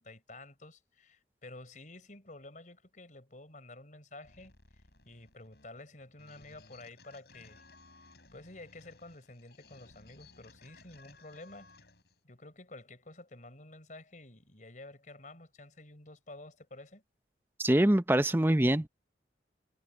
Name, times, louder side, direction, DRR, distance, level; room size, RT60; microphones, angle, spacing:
voice 1, 0.0-7.6 8.3-11.7 12.2-17.0, left 2 dB, 45° left, 4.8 m, -51 dB
sound 1, 4.2-12.2, left 3 dB, 65° left, 7.2 m, -59 dB
voice 2, 17.6-18.9, right 1 dB, 10° right, 0.7 m, -24 dB
head